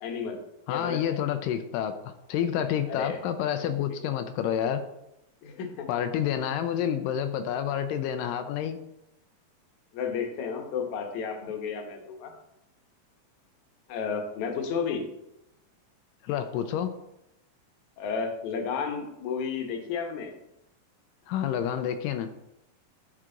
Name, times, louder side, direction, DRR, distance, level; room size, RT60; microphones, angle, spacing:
voice 1, 0.0-0.4 0.7-1.2 2.9-3.2 5.4-5.9 9.9-12.3 13.9-15.0 18.0-20.3, left 6 dB, 70° left, 4 dB, 2.3 m, -32 dB
voice 2, 0.7-1.9 2.3-4.8 5.9-8.8 16.2-16.9 21.3-22.3, left 9 dB, 90° left, 8 dB, 2.2 m, -28 dB
12.0 x 4.8 x 3.8 m, 0.85 s
omnidirectional pair, 3.8 m